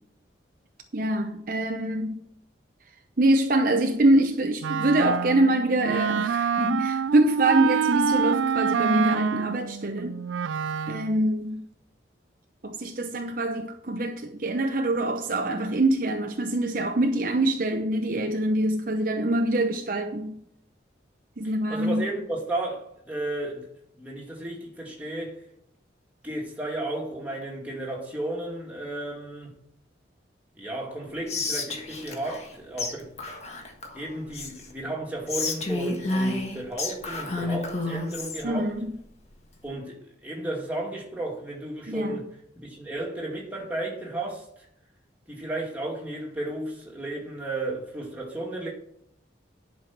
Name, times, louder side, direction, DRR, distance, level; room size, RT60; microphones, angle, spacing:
voice 1, 0.9-2.2 3.2-10.2 10.9-11.7 12.6-20.4 21.4-22.0 38.4-38.9 41.9-42.2, right 1 dB, 50° right, 0.7 m, -24 dB
Wind instrument woodwind instrument, 4.6-11.2, right 6 dB, 85° right, 0.4 m, -27 dB
voice 2, 21.7-23.7 24.0-25.4 26.2-29.5 30.6-33.1 33.9-38.7 39.6-42.3 42.6-44.5 45.3-48.7, right 1 dB, 10° right, 2.3 m, -33 dB
Whispering, 31.3-32.5 32.8-32.9 33.2-34.7 35.3-38.4, left 2 dB, 35° left, 1.5 m, -30 dB
11.0 x 5.5 x 6.0 m
head